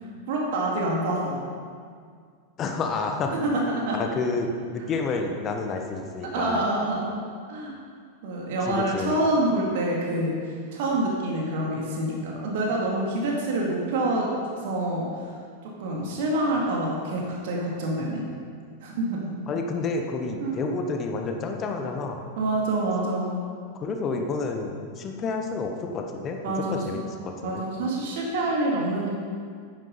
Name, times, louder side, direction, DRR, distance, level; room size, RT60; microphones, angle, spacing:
voice 1, 0.3-1.4 3.3-4.0 6.3-7.1 7.5-7.7 8.2-10.5 10.7-14.3 14.6-15.1 15.6-18.2 18.8-19.4 20.4-20.6 22.4-23.3 26.4-26.8 27.4-29.1, right 1 dB, 50° right, -2 dB, 2.2 m, -26 dB
voice 2, 2.6-3.3 3.9-6.7 8.6-9.2 19.5-22.3 23.8-27.6, left 3 dB, 30° left, 3 dB, 1.3 m, -30 dB
9.7 x 9.2 x 5.3 m, 2.1 s
figure-of-eight pair, 90°, 0 cm